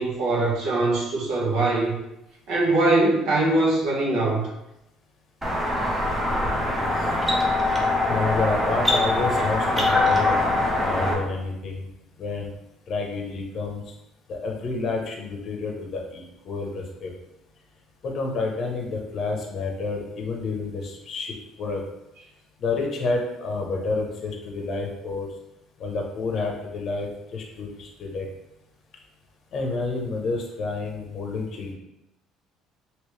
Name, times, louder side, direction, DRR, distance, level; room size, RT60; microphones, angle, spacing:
voice 1, 0.0-1.9 2.5-4.4, right 2 dB, 70° right, -4 dB, 1.2 m, -22 dB
sound 1, 5.4-11.1, left 2 dB, 10° right, 0.7 m, -23 dB
voice 2, 8.1-10.3 10.8-11.8 12.2-12.5 12.9-13.8 14.3-17.1 18.0-21.8 22.6-25.3 25.8-28.3 29.5-31.7, left 3 dB, 45° left, 1 dB, 0.8 m, -29 dB
3.1 x 2.9 x 3.2 m, 0.88 s
cardioid pair, 120°, 0 cm